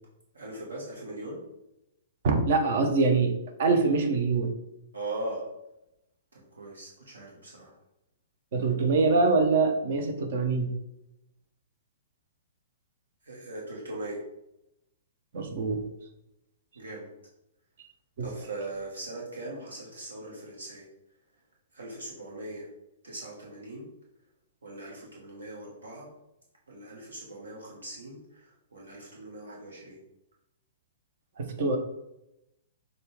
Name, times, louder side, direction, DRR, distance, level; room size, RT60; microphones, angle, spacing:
voice 1, 0.3-1.4 4.9-5.5 6.3-7.7 13.2-14.2 16.7-17.1 18.2-20.9 21.7-22.7 23.0-23.9 24.6-26.1 26.7-30.0, right 2 dB, 75° right, -3 dB, 1.3 m, -40 dB
voice 2, 2.2-3.3 3.6-4.5 8.5-10.7 15.3-15.8 18.2-18.3 31.4-31.8, right 4 dB, 55° right, 5 dB, 0.8 m, -24 dB
6.5 x 2.4 x 3.3 m, 0.87 s
figure-of-eight pair, 115°, 0 cm